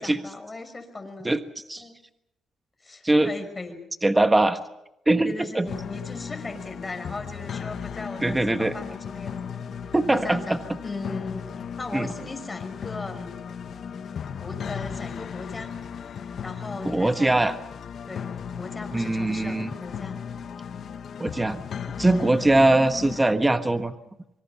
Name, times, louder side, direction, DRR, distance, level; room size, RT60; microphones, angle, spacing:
voice 1, 0.0-1.3 1.8-2.0 2.8-3.9 5.2-9.4 9.8-13.4 14.4-15.8 16.4-17.3 18.1-18.3 18.6-20.2, left 3 dB, 20° left, 6 dB, 5.5 m, -38 dB
voice 2, 1.2-1.8 3.0-3.3 4.0-4.6 5.1-5.7 8.2-8.7 9.9-10.6 11.9-12.1 16.8-17.5 18.9-19.7 21.2-21.6 22.0-23.9, right 2 dB, 15° right, 9 dB, 1.4 m, -21 dB
sound 1, 5.7-23.3, left 7 dB, 55° left, 1.6 m, -36 dB
25.5 x 24.5 x 5.9 m, 0.86 s
cardioid pair, 90°, 0 cm